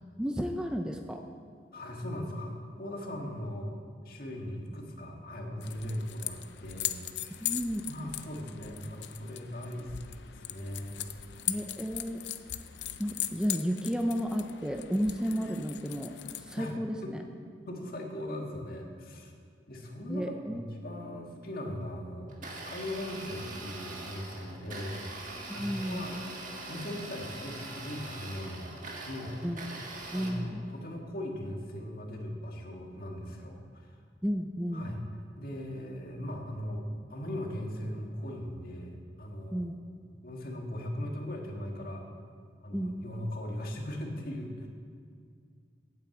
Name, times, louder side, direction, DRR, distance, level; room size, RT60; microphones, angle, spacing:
voice 1, 0.2-1.2 7.4-8.1 11.5-12.2 13.0-17.2 20.1-20.6 21.0-21.2 25.5-26.1 29.4-29.6 30.1-30.6 34.2-34.9 39.5-39.8 42.7-42.9, equal, 5° right, 4 dB, 0.5 m, -33 dB
voice 2, 1.7-3.8 4.0-7.5 7.9-11.0 11.3-11.5 16.6-16.7 17.0-17.1 17.7-19.3 19.7-26.2 26.7-28.7 29.0-29.4 30.1-33.9 34.7-35.0 35.4-39.7 40.2-42.0 42.6-44.7, left 1 dB, 55° left, 1 dB, 1.7 m, -39 dB
sound 1, 5.6-16.8, left 12 dB, 70° left, 0.5 m, -39 dB
Domestic sounds home sounds, 22.3-30.3, right 2 dB, 45° right, 1.6 m, -42 dB
9.2 x 8.6 x 7.8 m, 2.2 s
head